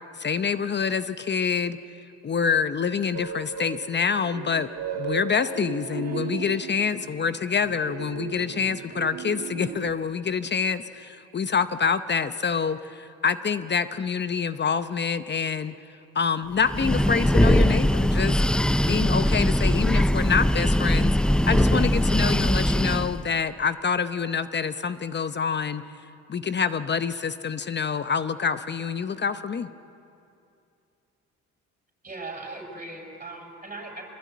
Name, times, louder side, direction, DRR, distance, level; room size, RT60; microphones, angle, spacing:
voice 1, 0.2-1.8 2.2-4.7 4.9-15.7 16.1-18.4 18.9-21.2 21.5-25.8 26.3-29.7, left 6 dB, 35° left, 12 dB, 0.8 m, -26 dB
sound 1, 3.1-9.9, right 7 dB, 60° right, 1.5 m, -36 dB
Breathing, 16.6-23.2, equal, 5° left, 0.5 m, -21 dB
voice 2, 32.0-34.0, right 2 dB, 25° right, 1 dB, 6.7 m, -38 dB
24.0 x 21.0 x 9.4 m, 2.6 s
cardioid pair, 90°, 30 cm